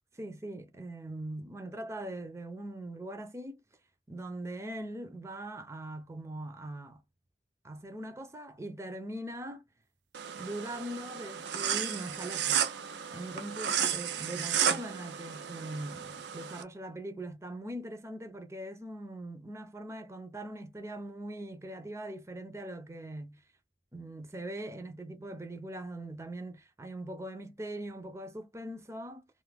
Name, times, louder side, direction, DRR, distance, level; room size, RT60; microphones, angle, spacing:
voice 1, 0.2-3.6 4.1-7.0 7.6-9.6 10.4-12.6 13.1-23.4 23.9-29.3, right 1 dB, 15° right, 0.5 m, -41 dB
sound 1, 10.1-16.6, right 8 dB, 75° right, 0.5 m, -33 dB
2.6 x 2.4 x 3.3 m
head